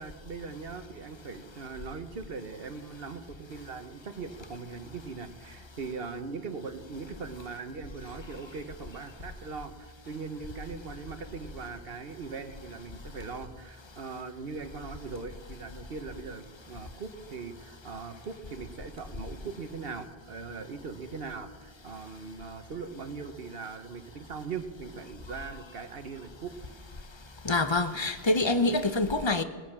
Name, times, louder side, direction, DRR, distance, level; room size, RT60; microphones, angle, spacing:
voice 1, 0.0-26.5, right 4 dB, 65° right, 1.3 m, -40 dB
voice 2, 27.4-29.4, left 2 dB, 30° left, 0.7 m, -26 dB
19.0 x 10.0 x 7.4 m
omnidirectional pair, 1.1 m